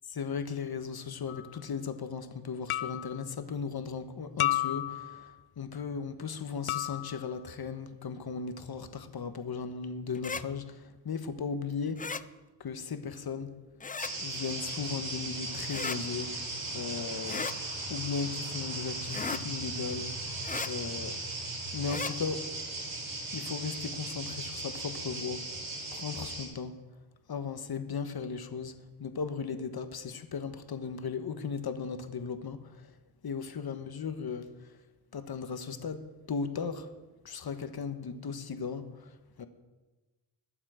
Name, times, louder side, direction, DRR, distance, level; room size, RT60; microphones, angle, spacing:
voice 1, 0.1-12.1 12.6-13.6 14.2-17.5 17.9-21.2 21.7-22.6 23.3-26.8 27.3-33.0 33.2-34.9 35.1-36.9 37.2-39.5, left 5 dB, 50° left, 1.3 m, -37 dB
sound 1, 1.3-1.5 2.7-3.2 4.4-5.3 6.7-7.3, left 14 dB, 75° left, 0.6 m, -32 dB
sound 2, 10.1-10.4 12.0-12.2 13.8-14.1 15.7-16.0 17.3-17.6 19.1-19.4 20.4-20.7 21.8-22.1, left 5 dB, 20° left, 0.4 m, -35 dB
sound 3, 14.0-26.5, right 2 dB, 80° right, 4.6 m, -37 dB
21.5 x 7.3 x 5.0 m
cardioid pair, 80°, 49 cm